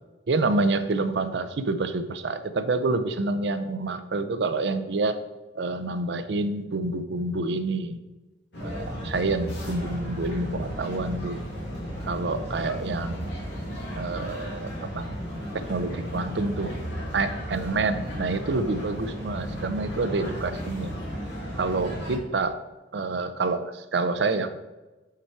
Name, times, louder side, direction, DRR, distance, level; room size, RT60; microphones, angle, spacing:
voice 1, 0.3-5.2 5.6-8.0 8.6-11.5 12.0-13.3 14.0-15.1 15.5-16.7 17.1-20.9 21.5-22.6 22.9-24.6, right 3 dB, 65° right, 11 dB, 0.5 m, -27 dB
sound 1, 8.5-22.2, equal, 65° left, 2.1 m, -34 dB
5.8 x 4.2 x 4.6 m, 1.1 s
head